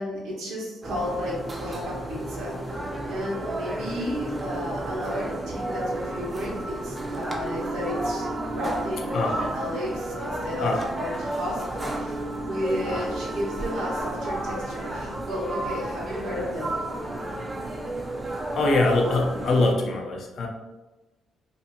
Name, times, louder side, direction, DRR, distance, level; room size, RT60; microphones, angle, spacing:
voice 1, 0.0-8.3 8.5-16.7, left 1 dB, 85° right, -4 dB, 1.0 m, -33 dB
sound 1, 0.8-19.7, right 1 dB, 25° right, 0.4 m, -32 dB
Alarm, 5.5-8.9 9.2-9.6, right 1 dB, 25° left, 0.7 m, -42 dB
voice 2, 18.5-20.5, left 2 dB, 60° left, 1 dB, 0.5 m, -23 dB
2.6 x 2.5 x 2.7 m, 1.1 s
cardioid pair, 90°, 0 cm